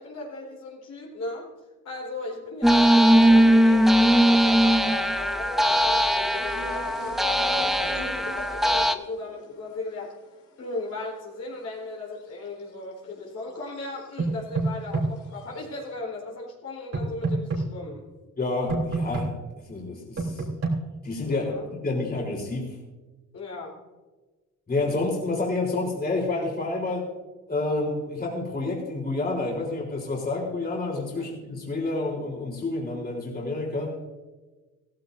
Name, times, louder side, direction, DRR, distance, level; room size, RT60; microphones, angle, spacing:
voice 1, 0.0-1.4 1.8-10.1 10.6-18.1 21.2-21.7 23.3-23.8 31.1-31.2, left 2 dB, 55° left, -2 dB, 3.8 m, -37 dB
sound 1, 2.6-8.9, equal, ahead, 0.8 m, -20 dB
sound 2, 6.3-12.7 13.3-14.1 14.5-15.6, left 1 dB, 75° left, 3.6 m, -43 dB
sound 3, 14.2-15.1 16.9-17.6 18.7-19.3 20.2-20.8, right 3 dB, 55° right, 3.4 m, -26 dB
voice 2, 18.4-19.3 19.7-20.4 21.0-21.4 21.7-22.8 24.7-27.1 27.5-34.0, left 2 dB, 30° left, -2 dB, 3.7 m, -29 dB
16.0 x 15.0 x 2.6 m, 1.2 s
cardioid pair, 90°, 30 cm